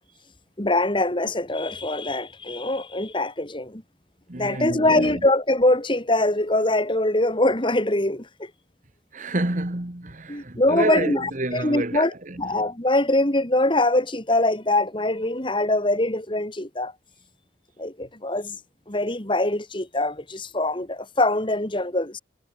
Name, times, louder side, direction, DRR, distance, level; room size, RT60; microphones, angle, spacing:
voice 1, 0.6-3.8 4.4-8.5 10.3-12.1 12.4-16.9 17.8-18.6 18.9-22.2, left 1 dB, 25° left, 2.5 m, -23 dB
voice 2, 4.3-5.3 9.1-12.6, right 2 dB, 45° right, 1.7 m, -29 dB
head